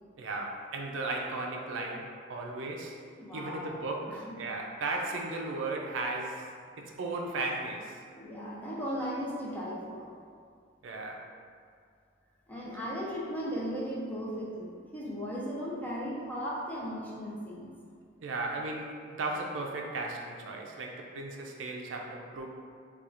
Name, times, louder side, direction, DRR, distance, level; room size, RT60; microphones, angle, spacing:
voice 1, 0.2-3.0 3.3-6.5 6.8-8.0 10.8-11.3 18.2-22.5, right 2 dB, 80° right, 0 dB, 0.4 m, -36 dB
voice 2, 3.2-4.2 8.1-10.1 12.5-17.7, equal, 10° left, -6 dB, 0.5 m, -36 dB
4.2 x 2.3 x 2.4 m, 2.2 s
head